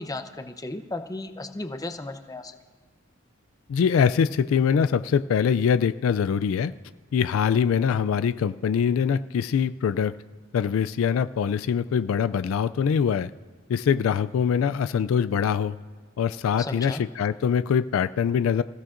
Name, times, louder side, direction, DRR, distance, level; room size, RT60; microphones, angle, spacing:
voice 1, 0.0-2.5 16.6-17.0, left 2 dB, 20° left, 7 dB, 0.7 m, -35 dB
voice 2, 3.7-6.7 7.1-10.2 10.5-13.3 13.7-15.8 16.2-18.6, left 7 dB, 75° left, 13 dB, 0.3 m, -23 dB
27.0 x 15.0 x 2.5 m, 1.5 s
head